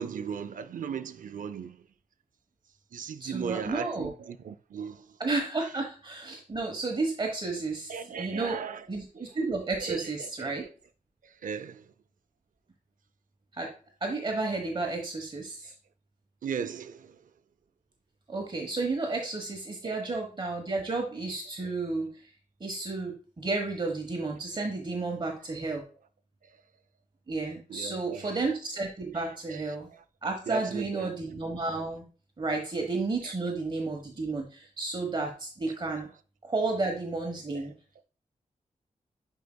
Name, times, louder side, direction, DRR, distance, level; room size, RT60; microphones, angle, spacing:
voice 1, 0.0-1.8 2.9-5.2 7.9-8.9 9.2-9.3 9.8-10.7 11.2-11.9 16.4-17.2 19.8-20.1 27.7-28.3 29.1-30.0 30.5-31.1 33.2-33.3 37.5-37.6, right 7 dB, 80° right, 0.5 m, -37 dB
voice 2, 3.2-4.1 5.2-8.6 8.9-10.6 13.5-13.7 14.0-15.7 18.3-22.1 22.6-25.8 27.3-29.9 30.2-32.0 32.4-36.1 36.4-37.7, right 3 dB, 35° right, 1.2 m, -32 dB
9.3 x 4.9 x 2.3 m
wide cardioid pair, 125°, 14 cm